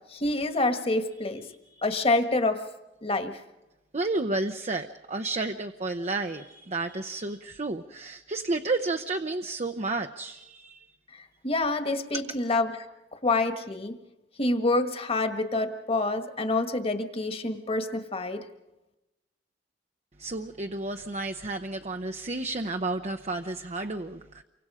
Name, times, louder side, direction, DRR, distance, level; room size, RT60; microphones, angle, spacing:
voice 1, 0.1-1.4 1.8-2.6 3.0-3.4 11.1-12.7 13.2-13.9 14.4-18.4, left 2 dB, 35° left, 7 dB, 1.6 m, -27 dB
voice 2, 3.9-10.9 20.2-24.4, right 2 dB, 40° right, 5 dB, 0.8 m, -31 dB
29.0 x 25.0 x 5.0 m, 1.0 s
head